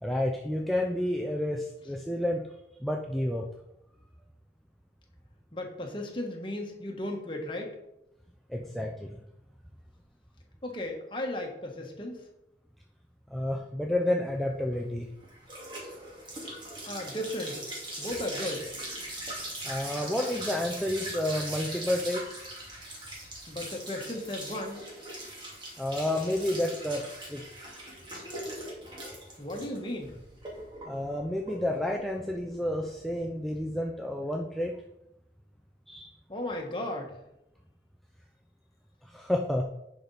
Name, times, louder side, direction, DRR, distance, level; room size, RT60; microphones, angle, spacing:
voice 1, 0.0-2.5 2.8-3.5 8.5-9.1 13.3-15.1 19.6-22.4 25.8-27.9 30.9-34.8 35.9-36.1 39.0-39.6, left 1 dB, ahead, -1 dB, 0.5 m, -30 dB
voice 2, 5.5-7.8 10.6-12.2 16.8-17.6 18.0-18.7 23.5-24.8 29.4-30.2 36.3-37.1, left 1 dB, 30° left, 1 dB, 1.4 m, -35 dB
sound 1, 14.5-33.5, right 1 dB, 25° right, 2.3 m, -41 dB
10.5 x 5.1 x 4.1 m, 0.85 s
head